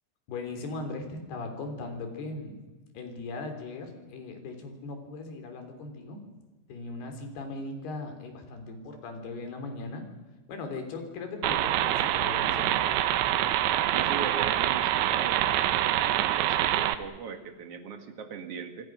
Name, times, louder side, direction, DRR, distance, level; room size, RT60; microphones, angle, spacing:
voice 1, 0.3-2.6 2.9-6.2 6.7-10.0 10.5-12.9, left 3 dB, 60° left, 5 dB, 5.2 m, -38 dB
sound 1, 11.4-17.0, right 13 dB, 80° right, 3.2 m, -25 dB
voice 2, 13.9-18.9, right 6 dB, 55° right, 7 dB, 1.7 m, -39 dB
27.0 x 25.0 x 6.2 m, 1.2 s
omnidirectional pair, 5.4 m